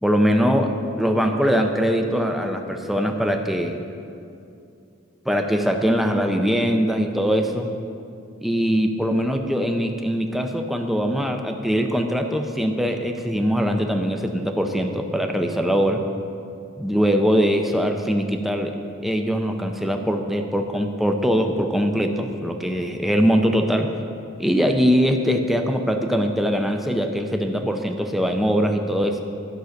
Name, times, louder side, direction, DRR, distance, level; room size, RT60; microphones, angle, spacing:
voice 1, 0.0-3.8 5.3-7.7 8.4-16.0 16.8-18.8 19.0-23.9 24.4-29.2, equal, ahead, 4 dB, 0.5 m, -22 dB
12.0 x 5.4 x 6.5 m, 2.5 s
head